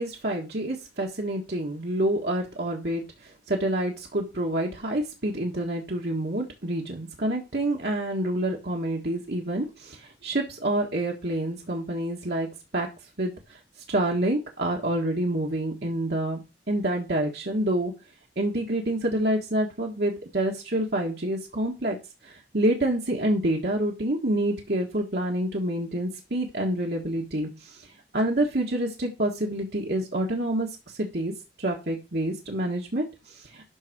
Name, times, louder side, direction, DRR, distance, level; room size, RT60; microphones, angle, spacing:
voice 1, 0.0-12.5 12.7-12.9 13.2-13.6 13.9-16.4 16.7-17.9 18.4-22.0 22.2-27.9 28.1-33.6, right 1 dB, 65° right, -1 dB, 1.6 m, -27 dB
12.0 x 4.1 x 6.1 m, 0.28 s
head